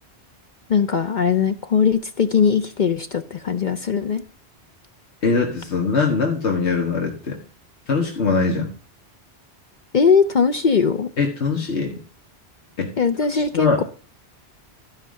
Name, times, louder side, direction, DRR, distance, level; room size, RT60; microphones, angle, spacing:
voice 1, 0.7-4.2 9.9-11.1 13.0-13.8, left 6 dB, 50° left, 7 dB, 0.8 m, -20 dB
voice 2, 5.2-7.4 7.9-8.7 11.2-12.0 12.8-12.9 13.3-13.8, left 4 dB, 90° left, 1 dB, 1.9 m, -22 dB
14.0 x 5.6 x 6.3 m, 0.36 s
omnidirectional pair, 1.1 m